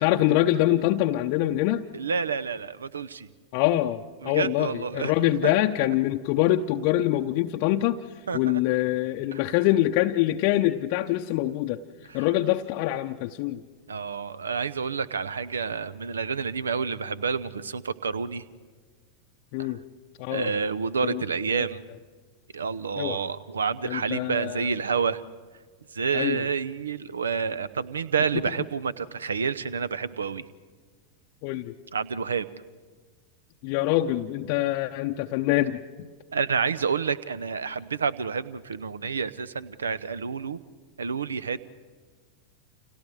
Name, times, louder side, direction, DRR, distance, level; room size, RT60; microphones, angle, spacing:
voice 1, 0.0-1.9 3.5-8.0 8.3-11.8 12.1-13.6 19.5-19.8 20.2-20.5 21.0-21.2 21.5-21.7 23.0-23.2 23.8-24.7 26.1-26.4 31.4-31.7 33.6-36.1, left 14 dB, 45° left, 4 dB, 0.7 m, -25 dB
voice 2, 1.9-3.3 4.2-5.1 5.4-5.7 8.3-8.4 9.3-9.4 13.9-18.4 19.6-19.7 20.3-21.8 22.5-25.2 25.9-30.5 31.9-32.5 36.3-40.6 41.0-41.6, right 5 dB, 70° right, 18 dB, 0.8 m, -29 dB
30.0 x 28.0 x 4.8 m, 1.5 s
figure-of-eight pair, 90°, 0 cm